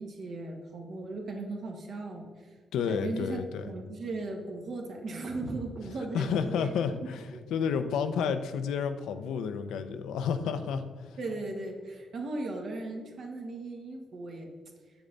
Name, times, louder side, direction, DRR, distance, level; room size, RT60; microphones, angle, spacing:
voice 1, 0.0-2.5 2.8-6.7 7.3-7.4 11.2-14.5, right 2 dB, 65° right, 1 dB, 1.6 m, -37 dB
voice 2, 2.7-3.7 6.1-11.2, left 6 dB, 90° left, 9 dB, 0.6 m, -31 dB
7.2 x 6.8 x 4.0 m, 1.5 s
cardioid pair, 70°, 0 cm